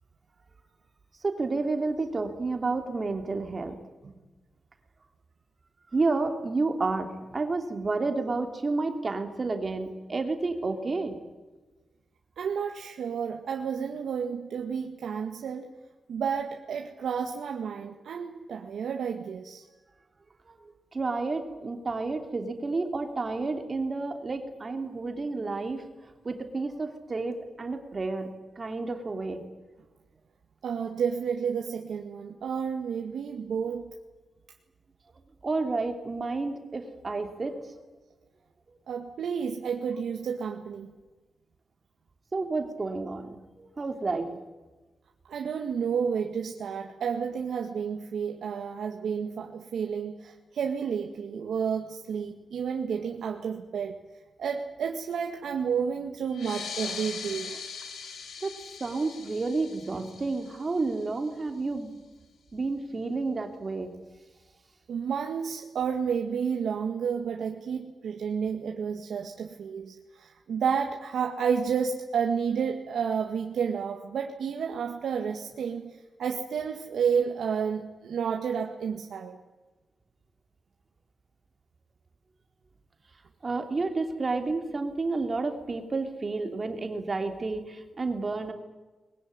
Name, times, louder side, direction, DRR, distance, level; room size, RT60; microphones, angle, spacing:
voice 1, 1.2-3.7 5.9-11.2 20.9-25.8 26.2-29.4 35.4-37.5 42.3-44.3 58.4-58.5 58.8-61.9 62.5-63.9 83.4-88.5, right 3 dB, 30° right, 6 dB, 3.0 m, -30 dB
voice 2, 12.4-15.7 16.1-19.6 30.6-33.9 38.9-40.9 45.3-54.0 54.4-57.5 64.9-75.9 76.2-79.4, right 7 dB, 90° right, 3 dB, 2.0 m, -31 dB
sound 1, 56.3-61.4, left 6 dB, 75° left, 3.5 m, -41 dB
22.5 x 21.5 x 9.7 m, 1.2 s
wide cardioid pair, 175°, 0 cm